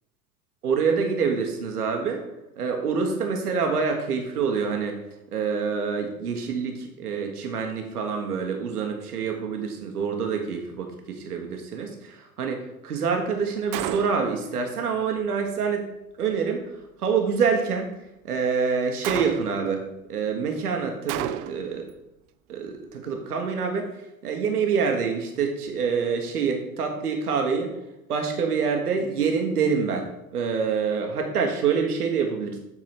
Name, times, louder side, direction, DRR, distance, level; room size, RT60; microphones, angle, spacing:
voice 1, 0.6-2.2 2.6-5.0 5.3-15.9 16.2-16.6 17.0-17.9 18.2-21.8 22.5-23.9 24.2-27.7 28.1-30.1 30.3-32.6, right 5 dB, 85° right, 3 dB, 1.1 m, -26 dB
Gunshot gunfire, 13.7-14.4 19.0-19.7 21.1-21.8, right 12 dB, 45° right, 0.5 m, -31 dB
7.7 x 3.9 x 5.8 m, 0.86 s
hypercardioid pair, 75°, 44 cm